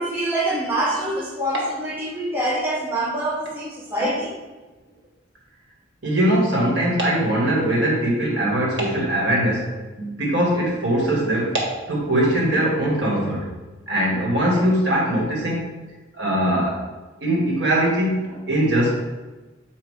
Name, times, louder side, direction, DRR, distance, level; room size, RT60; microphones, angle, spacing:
voice 1, 0.0-4.3, right 1 dB, 10° right, -5 dB, 1.0 m, -25 dB
voice 2, 6.0-11.6 11.9-13.5 13.9-15.7 16.2-16.8 17.2-18.9, right 1 dB, 70° right, -3 dB, 1.9 m, -21 dB
7.7 x 2.8 x 4.8 m, 1.2 s
head